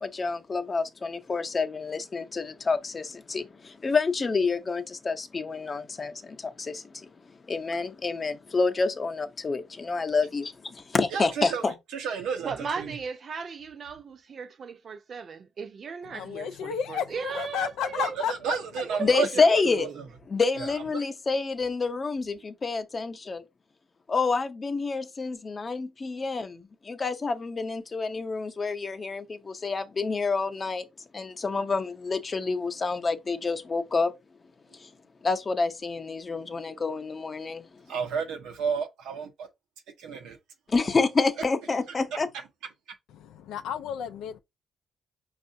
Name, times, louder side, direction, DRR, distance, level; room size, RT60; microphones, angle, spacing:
voice 1, 0.0-11.7 19.0-19.9 20.3-23.4 24.1-30.8 31.1-34.1 34.7-34.9 35.2-37.7 40.7-42.3, left 4 dB, 35° left, 0.7 m, -28 dB
voice 2, 11.1-11.6 11.9-12.9 18.0-18.1 18.4-19.4 19.8-20.0 37.9-39.5 40.0-40.4, right 6 dB, 90° right, 0.8 m, -31 dB
voice 3, 12.4-18.2 18.8-20.0, right 5 dB, 50° right, 0.6 m, -37 dB
voice 4, 16.0-18.6 43.1-44.4, left 8 dB, 85° left, 0.3 m, -33 dB
5.3 x 2.4 x 2.6 m
cardioid pair, 90°, 0 cm